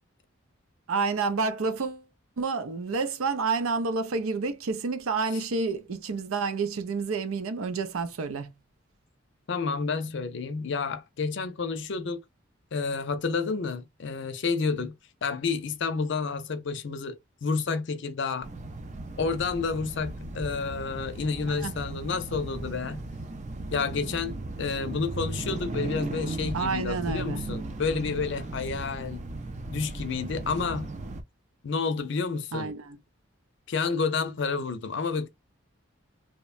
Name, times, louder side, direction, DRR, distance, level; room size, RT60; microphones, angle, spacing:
voice 1, 0.9-2.1 2.4-8.5 21.6-21.7 26.5-27.4 32.5-33.0, right 4 dB, 90° right, 0.5 m, -29 dB
voice 2, 9.5-12.2 12.7-15.0 15.2-18.5 19.2-23.0 23.7-29.2 29.7-30.9 31.6-32.7 33.7-35.3, left 4 dB, 60° left, 0.5 m, -30 dB
sound 1, 18.4-31.2, right 2 dB, 35° right, 0.4 m, -36 dB
3.0 x 2.1 x 2.4 m
head